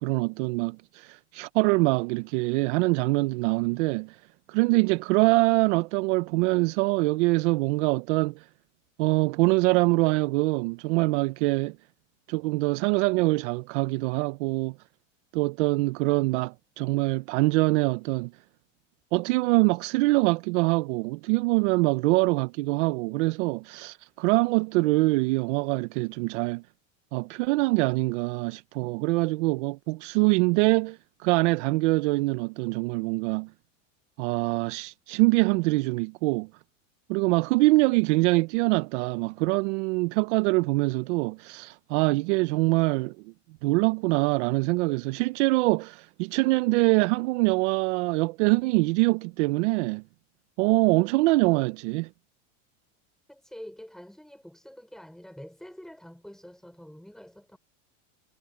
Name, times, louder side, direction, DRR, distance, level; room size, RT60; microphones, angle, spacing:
voice 1, 0.0-4.2 4.5-8.5 9.0-11.8 12.3-14.7 15.3-18.3 19.1-26.6 27.1-33.5 34.2-36.5 37.1-43.2 43.6-50.0 50.6-52.1, right 23 dB, 65° right, 0.9 m, -24 dB
voice 2, 53.3-57.6, equal, ahead, 5.6 m, -46 dB
supercardioid pair, 130°, 37 cm